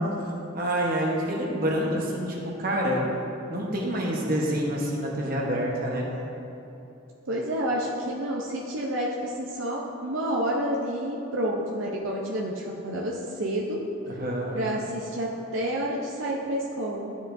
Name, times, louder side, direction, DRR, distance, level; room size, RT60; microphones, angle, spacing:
voice 1, 0.5-3.0 3.5-6.1 14.1-14.6, equal, 45° right, -2 dB, 1.0 m, -27 dB
voice 2, 7.3-13.8 14.5-17.1, right 1 dB, 70° right, -3 dB, 0.6 m, -29 dB
12.0 x 5.0 x 2.6 m, 2.9 s
head